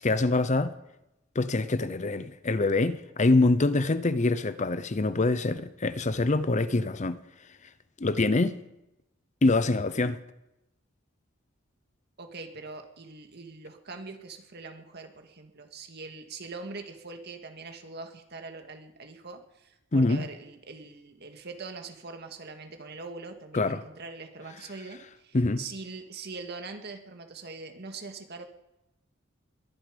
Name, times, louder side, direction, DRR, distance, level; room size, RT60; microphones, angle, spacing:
voice 1, 0.0-0.7 1.4-7.2 8.0-8.6 9.4-10.2 19.9-20.3 23.5-23.8 25.3-25.6, left 2 dB, 35° left, 0.7 m, -25 dB
voice 2, 12.2-28.4, right 3 dB, 55° right, 1.9 m, -42 dB
21.5 x 11.5 x 5.2 m
head